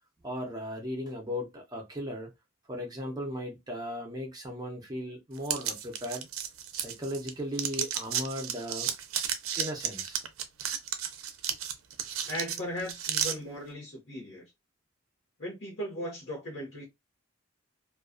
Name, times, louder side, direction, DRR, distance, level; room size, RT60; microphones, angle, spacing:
voice 1, 0.2-2.3 2.7-6.3 6.7-8.9 9.6-10.2, equal, 20° right, 0.5 m, -37 dB
sound 1, 5.4-7.3 7.6-13.3, right 9 dB, 80° right, 0.4 m, -33 dB
voice 2, 12.3-14.4 15.4-16.8, equal, 60° left, 1.0 m, -37 dB
2.3 x 2.2 x 2.4 m
head